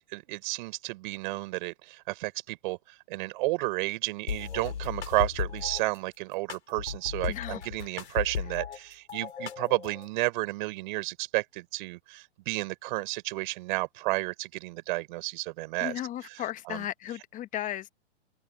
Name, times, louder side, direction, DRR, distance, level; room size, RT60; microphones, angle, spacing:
voice 1, 0.0-16.9, right 22 dB, 45° right, 6.3 m, -32 dB
sound 1, 4.3-5.8 6.5-8.8 9.1-10.1, left 7 dB, 75° left, 7.8 m, -35 dB
voice 2, 7.3-7.6 15.8-17.9, left 12 dB, 20° left, 1.6 m, -35 dB
hypercardioid pair, 130°, 35 cm